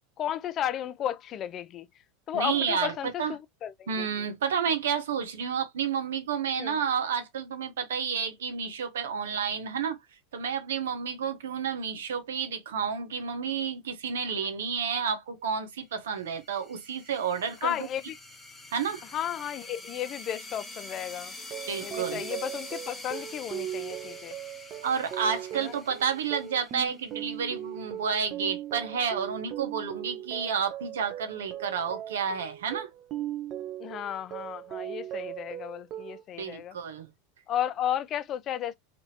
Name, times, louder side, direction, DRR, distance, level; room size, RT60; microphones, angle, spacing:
voice 1, 0.2-1.9 2.3-4.1 6.6-6.8 17.6-18.2 19.1-21.3 21.8-24.4 25.5-25.7 33.8-36.8 37.5-38.8, left 10 dB, 40° left, 0.3 m, -33 dB
voice 2, 2.3-3.3 3.9-10.0 10.3-17.8 18.7-19.0 21.7-22.2 24.8-32.9 36.4-37.1, right 7 dB, 85° right, 0.9 m, -30 dB
sound 1, 16.1-27.4, left 2 dB, 10° left, 0.7 m, -45 dB
sound 2, 21.4-36.2, right 12 dB, 40° right, 0.7 m, -39 dB
2.9 x 2.6 x 2.7 m
hypercardioid pair, 110°, 0 cm